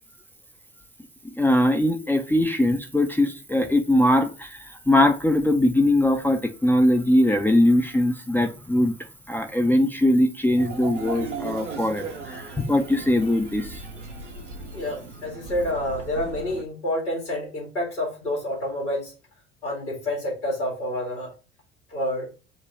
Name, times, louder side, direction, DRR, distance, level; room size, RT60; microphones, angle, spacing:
voice 1, 1.3-8.9 9.3-13.8, left 1 dB, 5° left, 0.4 m, -21 dB
sound 1, 10.6-16.6, right 3 dB, 85° right, 0.7 m, -37 dB
voice 2, 14.7-19.1 19.6-21.3 21.9-22.3, left 1 dB, 80° left, 2.3 m, -28 dB
5.0 x 2.2 x 4.3 m
figure-of-eight pair, 60°, 35 cm